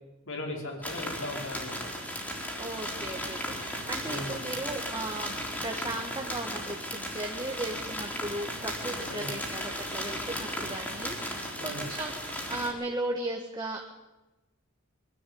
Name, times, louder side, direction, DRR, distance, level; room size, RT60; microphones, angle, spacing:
voice 1, 0.3-1.9 4.0-4.4 9.1-9.4 11.5-11.9, left 1 dB, 60° left, 2 dB, 4.7 m, -38 dB
sound 1, 0.8-12.7, equal, 10° left, 3.7 m, -36 dB
voice 2, 2.6-5.3 5.6-13.8, right 2 dB, 20° right, 1 dB, 1.7 m, -36 dB
23.5 x 12.0 x 9.5 m, 1.1 s
head